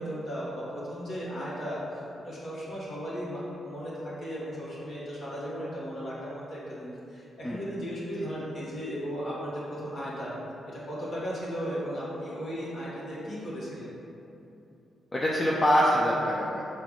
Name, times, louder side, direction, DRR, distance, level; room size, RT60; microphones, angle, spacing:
voice 1, 0.0-10.3 10.7-13.9, equal, 60° left, -8 dB, 1.4 m, -36 dB
voice 2, 15.1-16.6, equal, 35° left, -5 dB, 0.6 m, -24 dB
5.6 x 2.5 x 3.8 m, 2.8 s
hypercardioid pair, 40°, 0 cm